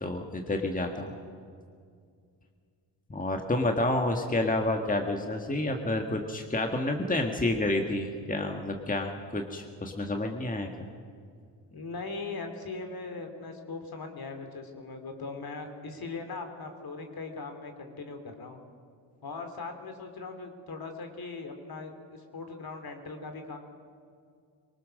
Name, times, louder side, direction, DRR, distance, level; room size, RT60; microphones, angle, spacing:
voice 1, 0.0-1.1 3.1-10.9, left 2 dB, 20° left, 4 dB, 1.7 m, -29 dB
voice 2, 11.7-18.6 19.2-23.6, left 3 dB, 50° left, 6 dB, 3.1 m, -40 dB
23.5 x 19.0 x 6.5 m, 2.2 s
cardioid pair, 70°, 45 cm